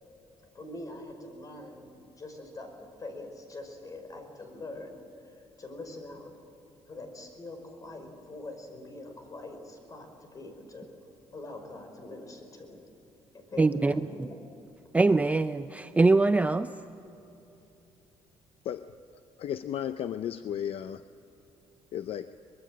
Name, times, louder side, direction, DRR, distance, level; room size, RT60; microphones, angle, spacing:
voice 1, 0.5-1.9 2.2-5.0 5.2-5.3 5.6-6.3 6.9-10.9 11.3-12.8 13.3-14.4, left 2 dB, 30° left, 5 dB, 5.0 m, -43 dB
voice 2, 13.6-14.3 14.9-16.7, right 3 dB, 15° right, 10 dB, 0.5 m, -23 dB
voice 3, 19.4-21.0 21.9-22.3, left 10 dB, 60° left, 11 dB, 0.6 m, -34 dB
24.0 x 22.0 x 7.6 m, 3.0 s
cardioid pair, 145°, 11 cm